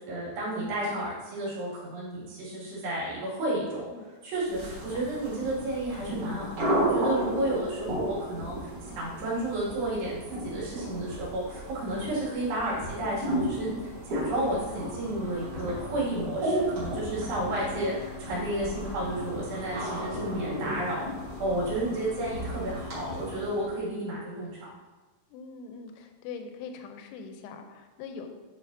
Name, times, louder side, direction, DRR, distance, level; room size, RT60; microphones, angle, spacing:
voice 1, 0.1-3.9 4.2-13.7 14.0-24.7, right 1 dB, 75° right, -8 dB, 4.6 m, -32 dB
sound 1, 4.4-23.7, right 1 dB, 40° right, 2.7 m, -34 dB
voice 2, 4.6-5.0 17.5-18.0 21.8-22.4 25.3-28.3, left 5 dB, 80° left, 5 dB, 2.6 m, -43 dB
11.0 x 5.5 x 2.7 m, 1.3 s
omnidirectional pair, 4.9 m